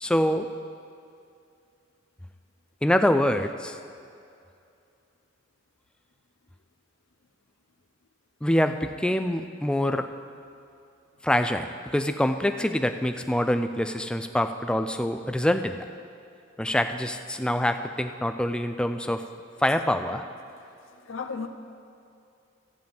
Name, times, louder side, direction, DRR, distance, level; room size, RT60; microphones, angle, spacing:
voice 1, 0.0-0.5 2.8-3.8 8.4-10.1 11.2-15.8 16.6-19.2 19.6-20.2, left 1 dB, 5° left, 7 dB, 0.4 m, -25 dB
voice 2, 20.5-21.5, left 5 dB, 85° left, 6 dB, 0.7 m, -38 dB
14.5 x 9.2 x 3.5 m, 2.5 s
head